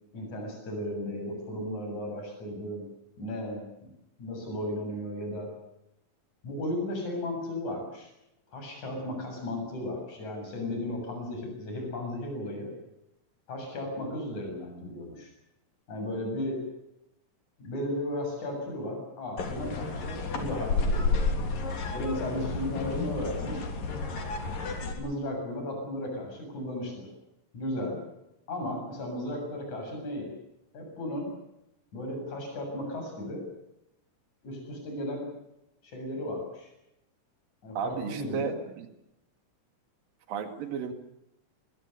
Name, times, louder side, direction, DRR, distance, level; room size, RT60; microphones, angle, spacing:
voice 1, 0.1-2.8 3.2-3.9 4.2-5.5 6.4-8.1 8.5-12.7 13.5-15.3 15.9-16.6 17.6-21.1 21.9-23.6 25.0-27.1 27.5-28.0 28.5-30.3 30.7-31.3 31.9-33.4 34.4-35.3 35.8-36.7 37.6-38.6, left 1 dB, 55° left, 3 dB, 8.8 m, -35 dB
sound 1, 19.4-24.9, left 3 dB, 80° left, 5.1 m, -31 dB
voice 2, 37.8-38.9 40.3-40.9, right 6 dB, 80° right, 8 dB, 3.8 m, -33 dB
23.5 x 22.0 x 6.8 m, 0.84 s
omnidirectional pair, 3.9 m